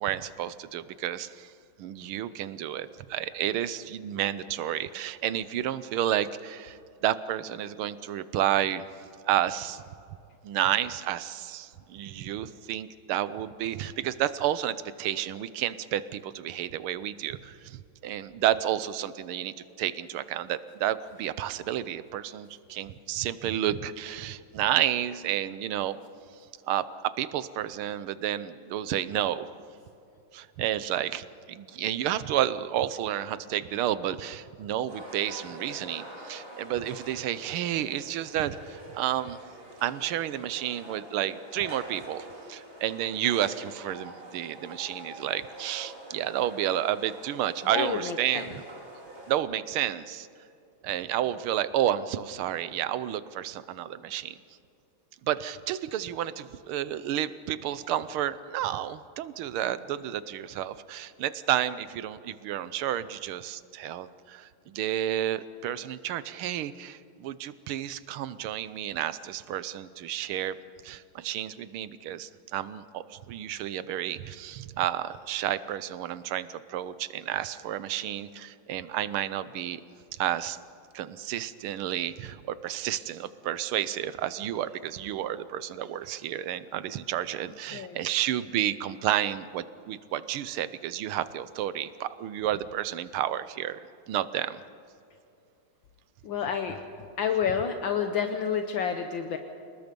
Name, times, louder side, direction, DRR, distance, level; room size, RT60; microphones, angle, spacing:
voice 1, 0.0-1.5 1.8-8.8 9.3-9.8 10.4-26.0 26.7-29.5 30.3-39.4 39.8-48.6 49.3-50.3 50.8-54.4 55.2-70.6 70.8-79.8 80.2-80.6 80.9-93.8 94.1-94.6, right 11 dB, 85° right, 15 dB, 1.7 m, -31 dB
sound 1, 34.9-49.4, right 1 dB, 25° right, 3.6 m, -46 dB
voice 2, 47.7-48.6 87.7-88.0 96.2-96.8 97.2-99.4, left 7 dB, 65° left, 6 dB, 1.6 m, -29 dB
28.5 x 19.5 x 5.3 m, 2.7 s
omnidirectional pair, 2.3 m